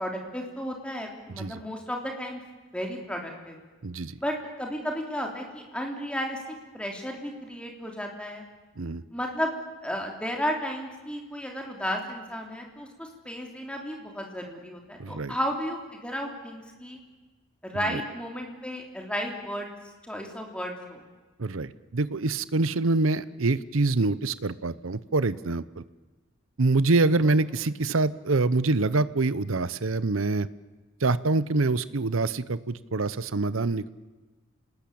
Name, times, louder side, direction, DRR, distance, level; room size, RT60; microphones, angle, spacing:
voice 1, 0.0-2.4 2.7-3.6 4.2-8.4 9.1-9.5 9.8-17.0 17.6-19.7 20.0-21.0, equal, 5° left, 1 dB, 3.6 m, -33 dB
voice 2, 1.3-1.6 3.8-4.2 8.8-9.0 15.0-15.3 17.9-18.0 21.4-25.6 26.6-30.5 31.0-33.9, right 3 dB, 80° right, 16 dB, 0.8 m, -25 dB
27.5 x 19.0 x 8.6 m, 1.3 s
head